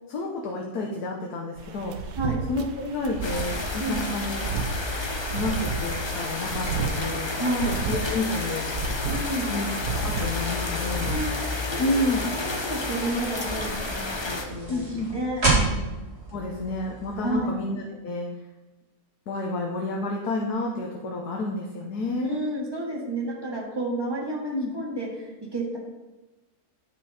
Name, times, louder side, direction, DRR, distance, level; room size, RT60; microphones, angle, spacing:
voice 1, 0.1-1.9 2.5-4.4 5.3-7.4 7.7-8.7 9.5-9.7 9.9-11.2 11.8-12.2 14.7-15.1 16.3-18.3 19.3-22.4 24.5-24.7, left 2 dB, 85° left, 0 dB, 1.5 m, -30 dB
sound 1, 1.6-11.2, right 5 dB, 85° right, 1.3 m, -33 dB
sound 2, 3.2-14.4, left 3 dB, 30° left, 0.5 m, -31 dB
voice 2, 7.4-7.8 9.1-9.5 11.1-11.3 11.6-11.9 12.4-14.9 15.1-15.9 17.2-17.5 22.2-25.8, right 1 dB, 15° right, -4 dB, 2.1 m, -30 dB
sound 3, 10.3-17.4, right 3 dB, 40° right, 2.9 m, -32 dB
9.8 x 6.0 x 4.3 m, 1.1 s
omnidirectional pair, 1.6 m